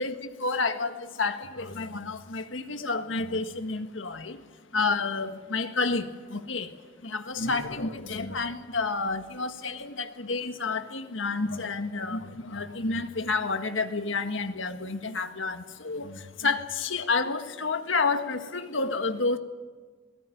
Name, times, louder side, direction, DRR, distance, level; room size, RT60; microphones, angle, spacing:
voice 1, 0.0-4.4 4.7-19.4, left 3 dB, 90° left, 8 dB, 1.6 m, -30 dB
21.0 x 18.5 x 9.3 m, 1.4 s
head